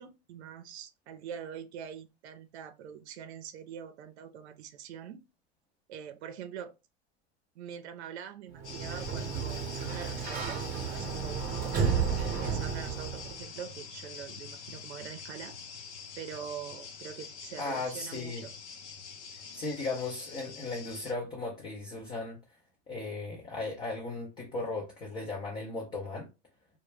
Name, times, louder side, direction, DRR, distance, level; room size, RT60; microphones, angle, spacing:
voice 1, 0.0-5.2 5.9-6.7 7.6-11.8 12.4-15.5 16.2-18.5, right 8 dB, 70° right, 0.6 m, -44 dB
Sliding door, 8.5-13.4, right 6 dB, 25° right, 0.6 m, -32 dB
sound 1, 8.6-21.1, left 6 dB, 90° left, 0.7 m, -45 dB
voice 2, 17.6-18.5 19.5-22.4 22.9-26.3, left 3 dB, 15° left, 0.3 m, -36 dB
2.1 x 2.1 x 3.1 m
hypercardioid pair, 125°, 34 cm